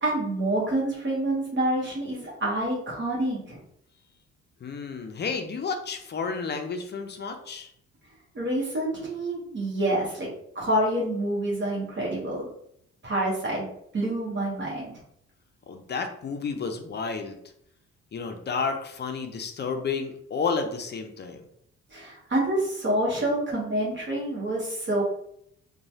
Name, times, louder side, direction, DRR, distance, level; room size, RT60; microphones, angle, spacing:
voice 1, 0.0-3.6 8.3-10.3 10.5-12.5 13.0-13.6 13.9-14.9 21.9-25.0, right 1 dB, 40° right, -5 dB, 1.0 m, -27 dB
voice 2, 4.6-7.7 15.7-17.4 18.1-21.4, left 5 dB, 35° left, 6 dB, 0.5 m, -31 dB
2.9 x 2.2 x 2.7 m, 0.70 s
cardioid pair, 90°, 30 cm